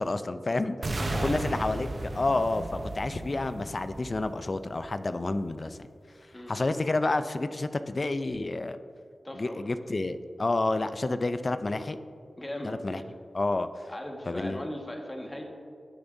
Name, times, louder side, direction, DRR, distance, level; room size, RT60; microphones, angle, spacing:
voice 1, 0.0-5.8 6.5-8.8 9.3-12.0 12.6-13.0 13.3-13.7 14.3-14.7, left 2 dB, 45° left, 11 dB, 0.4 m, -29 dB
sound 1, 0.8-4.8, right 2 dB, 55° right, 0.8 m, -35 dB
voice 2, 0.9-1.4 6.3-6.5 9.2-9.6 12.4-13.1 13.9-15.4, left 1 dB, 25° left, 1 dB, 1.5 m, -38 dB
17.0 x 6.9 x 2.7 m, 2.5 s
cardioid pair, 45°, 0 cm